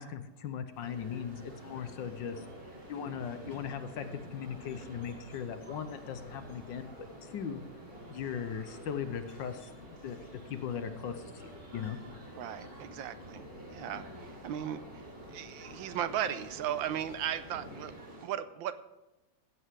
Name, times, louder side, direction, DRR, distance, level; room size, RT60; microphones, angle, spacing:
voice 1, 0.0-2.4 2.9-7.0 7.2-7.6 8.1-9.7 10.0-10.2 10.5-12.0, left 8 dB, 75° left, 9 dB, 1.5 m, -38 dB
sound 1, 0.7-18.1, left 2 dB, 50° left, 1.9 m, -55 dB
sound 2, 0.8-18.3, right 1 dB, 65° right, 4.0 m, -49 dB
voice 2, 12.3-15.0 15.3-18.8, right 10 dB, 80° right, 13 dB, 1.5 m, -37 dB
16.0 x 7.8 x 4.8 m, 1.0 s
omnidirectional pair, 2.1 m